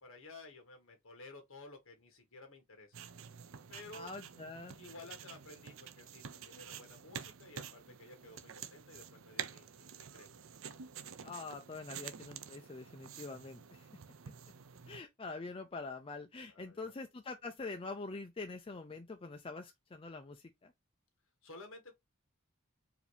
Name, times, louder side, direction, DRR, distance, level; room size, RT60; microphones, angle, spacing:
voice 1, 0.0-3.0 3.7-4.1 4.8-10.4 13.9-14.0 14.9-15.0 16.5-16.9 21.4-22.0, left 2 dB, 60° left, 1.7 m, -54 dB
sound 1, 2.9-15.0, right 8 dB, 60° right, 0.5 m, -49 dB
voice 2, 3.9-4.8 11.2-13.9 14.9-20.7, left 3 dB, 25° left, 0.4 m, -45 dB
4.8 x 2.7 x 3.3 m
head